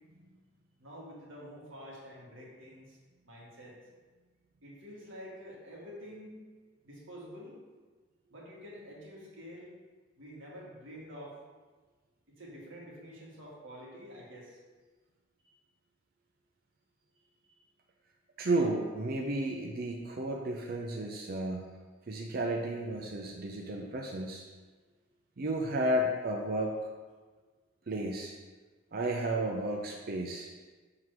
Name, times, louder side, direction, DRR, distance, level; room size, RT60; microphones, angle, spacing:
voice 1, 0.8-3.0 3.2-3.8 4.6-6.4 6.8-7.6 8.3-9.7 10.2-11.4 12.4-14.6 15.4-15.5 17.5-17.6, equal, 80° right, -5 dB, 1.8 m, -48 dB
voice 2, 18.4-21.7 22.1-24.4 25.4-26.7 27.9-28.3 28.9-30.5, right 1 dB, 50° right, 0 dB, 0.6 m, -32 dB
6.2 x 3.8 x 4.7 m, 1.3 s
head